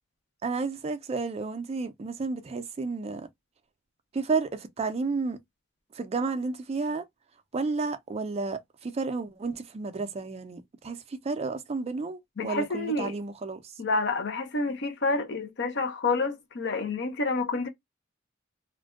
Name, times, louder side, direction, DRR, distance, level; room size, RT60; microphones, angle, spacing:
voice 1, 0.4-3.3 4.1-5.4 5.9-7.0 7.5-13.7, right 4 dB, 30° right, 0.4 m, -31 dB
voice 2, 12.4-13.1 13.8-17.7, left 3 dB, 60° left, 0.6 m, -28 dB
2.5 x 2.2 x 2.2 m
head